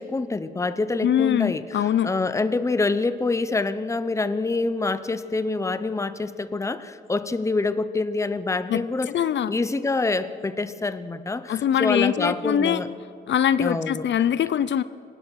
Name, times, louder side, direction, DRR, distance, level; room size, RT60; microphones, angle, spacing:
voice 1, 0.0-9.1 9.5-12.9 13.6-14.1, left 3 dB, 15° left, 13 dB, 0.7 m, -26 dB
voice 2, 1.0-2.1 8.7-9.5 11.5-12.8 13.3-14.8, left 9 dB, 65° left, 16 dB, 0.6 m, -23 dB
25.0 x 18.5 x 6.4 m, 2.4 s
wide cardioid pair, 125°, 20 cm